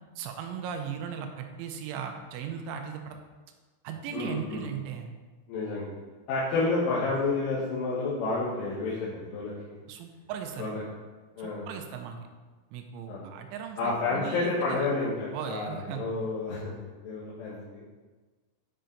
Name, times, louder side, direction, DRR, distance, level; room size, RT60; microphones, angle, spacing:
voice 1, 0.2-3.2 3.8-5.1 9.9-10.8 11.4-12.2 12.7-14.9 15.3-16.0, right 7 dB, 80° right, 4 dB, 2.9 m, -37 dB
voice 2, 4.1-4.7 5.5-5.9 6.3-9.5 10.6-10.8 11.3-11.7 13.1-13.2 13.8-17.8, left 3 dB, 75° left, -9 dB, 3.9 m, -30 dB
10.0 x 5.6 x 3.9 m, 1.3 s
omnidirectional pair, 5.8 m